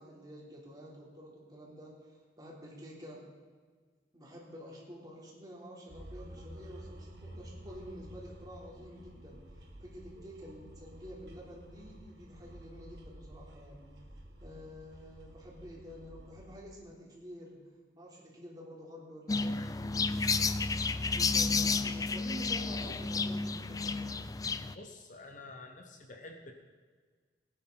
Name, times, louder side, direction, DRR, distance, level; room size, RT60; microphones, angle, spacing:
voice 1, 0.0-3.2 4.1-9.4 9.8-13.9 14.4-17.6 17.9-20.7 21.1-24.2, equal, 25° right, -4 dB, 3.3 m, -49 dB
sound 1, 5.9-16.6, equal, 70° right, 1.9 m, -51 dB
sound 2, 19.3-24.8, left 4 dB, 20° left, 0.4 m, -31 dB
voice 2, 24.7-26.5, left 2 dB, 45° left, 4 dB, 1.1 m, -49 dB
18.0 x 10.5 x 4.0 m, 1.6 s
head